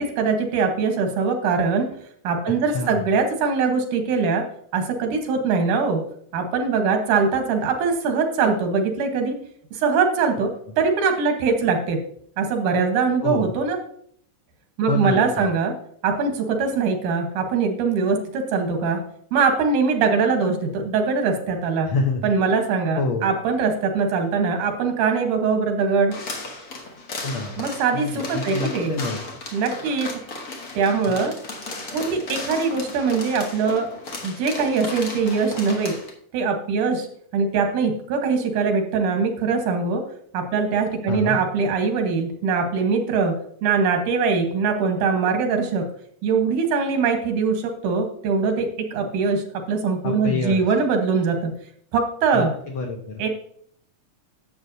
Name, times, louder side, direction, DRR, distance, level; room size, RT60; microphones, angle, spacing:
voice 1, 0.0-1.9 2.2-4.4 4.7-6.0 6.3-9.4 9.7-10.5 10.8-12.0 12.4-13.8 14.8-15.7 16.0-19.0 19.3-21.9 22.2-26.1 27.6-28.9 29.5-30.1 30.7-31.4 31.9-33.9 34.2-36.0 36.3-37.1 37.3-40.0 40.3-45.8 46.2-51.5 51.9-52.5 53.2-53.3, right 5 dB, 90° right, 5 dB, 2.7 m, -22 dB
voice 2, 2.7-3.0 13.2-13.6 14.9-15.5 21.9-22.3 22.9-23.4 27.2-27.6 27.9-29.2 31.1-31.2 41.1-41.4 50.0-50.7 52.3-53.2, left 3 dB, 75° left, 2 dB, 1.1 m, -27 dB
sound 1, 26.1-36.1, left 2 dB, 60° left, 0.9 m, -35 dB
11.0 x 7.4 x 2.7 m, 0.64 s
omnidirectional pair, 3.5 m